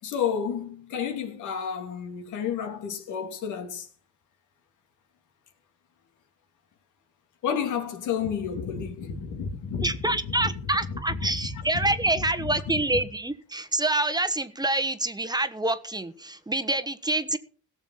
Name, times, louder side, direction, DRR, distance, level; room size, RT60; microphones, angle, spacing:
voice 1, 0.0-3.9 7.4-13.0, left 6 dB, 80° left, 3.0 m, -31 dB
voice 2, 9.8-17.4, right 2 dB, 15° right, 1.2 m, -27 dB
17.0 x 7.1 x 5.8 m
cardioid pair, 90°, 30 cm